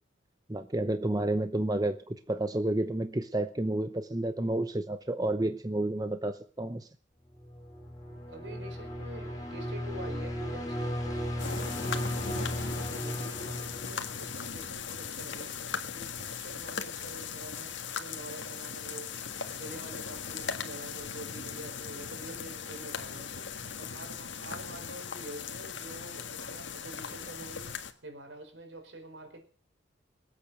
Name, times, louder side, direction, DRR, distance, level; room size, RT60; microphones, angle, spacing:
voice 1, 0.5-6.9, right 1 dB, 20° right, 0.7 m, -30 dB
sound 1, 7.3-14.7, equal, 20° left, 4.0 m, -36 dB
voice 2, 8.3-11.9 12.3-15.5 15.9-19.2 19.5-23.5 23.8-27.7 28.0-29.4, right 1 dB, 70° right, 4.7 m, -47 dB
sound 2, 11.4-27.9, left 6 dB, 75° left, 1.7 m, -38 dB
25.5 x 8.6 x 6.2 m
head